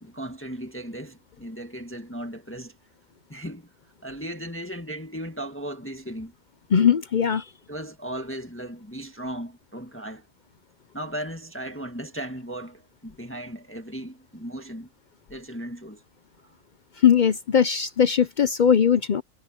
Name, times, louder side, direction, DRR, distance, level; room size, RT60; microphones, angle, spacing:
voice 1, 0.0-2.8 3.3-3.7 4.0-6.3 7.7-10.3 10.9-14.9 15.3-16.0, right 1 dB, 10° left, 1.4 m, -36 dB
voice 2, 6.7-7.5 17.0-19.2, left 8 dB, 60° left, 0.4 m, -20 dB
omnidirectional pair, 1.5 m